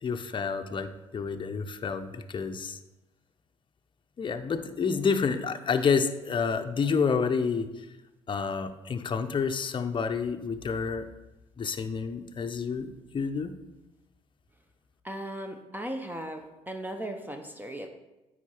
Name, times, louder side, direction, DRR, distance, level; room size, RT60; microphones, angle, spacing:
voice 1, 0.0-2.8 4.2-7.7 8.3-11.1 11.6-13.5, left 5 dB, 35° left, 7 dB, 0.7 m, -29 dB
voice 2, 15.0-17.9, right 1 dB, 15° right, 5 dB, 0.8 m, -37 dB
9.0 x 4.3 x 4.5 m, 1.0 s
hypercardioid pair, 55°, 14 cm